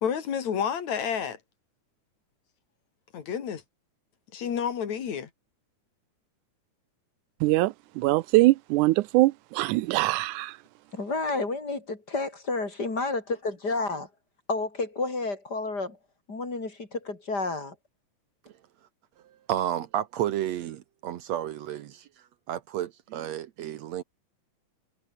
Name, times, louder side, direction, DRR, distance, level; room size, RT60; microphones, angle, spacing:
voice 1, 0.0-1.4 3.1-3.6 4.3-5.3, left 7 dB, 65° left, 3.5 m, -30 dB
voice 2, 7.4-10.6, right 19 dB, 85° right, 2.0 m, -23 dB
voice 3, 10.9-14.1 14.5-16.0 16.3-17.7, left 3 dB, 30° left, 4.6 m, -30 dB
voice 4, 19.2-22.1 22.5-24.0, right 11 dB, 70° right, 2.0 m, -31 dB
omnidirectional pair, 3.5 m